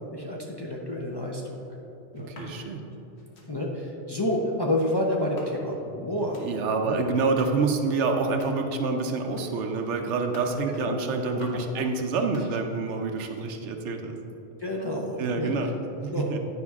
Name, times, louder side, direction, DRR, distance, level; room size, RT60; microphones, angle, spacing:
voice 1, 0.0-1.6 2.1-2.7 3.5-6.4 6.8-7.0 10.8-11.0 14.6-15.5 16.1-16.3, left 1 dB, 30° left, -2 dB, 0.5 m, -29 dB
sound 1, 2.1-2.5 3.1-3.5 4.1-4.4 5.2-5.8 6.1-6.5 7.1-7.6 8.1-8.7 9.1-9.5 10.1-10.6 11.1-11.7 12.1-12.9 13.1-13.7, left 1 dB, 70° left, 1.4 m, -50 dB
voice 2, 2.2-2.8 6.4-14.2 15.2-15.7 16.0-16.4, right 4 dB, 85° right, 4 dB, 1.0 m, -27 dB
9.6 x 5.2 x 3.6 m, 2.9 s
omnidirectional pair, 1.2 m